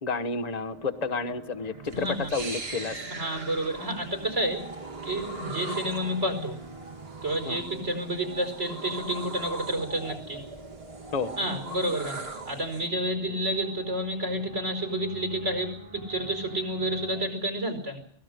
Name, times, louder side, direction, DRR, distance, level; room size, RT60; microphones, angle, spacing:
voice 1, 0.0-3.0 7.4-7.6 11.1-11.3, left 4 dB, 35° left, 11 dB, 1.2 m, -30 dB
sound 1, 0.7-17.3, right 2 dB, 30° right, 1.6 m, -45 dB
sound 2, 1.9-12.9, right 3 dB, 55° right, 2.0 m, -40 dB
voice 2, 1.9-2.3 3.2-4.6 5.0-6.6 7.2-10.4 11.4-12.2 12.4-18.0, right 1 dB, 80° right, 6 dB, 5.1 m, -30 dB
24.0 x 18.5 x 6.4 m, 0.68 s
omnidirectional pair, 1.2 m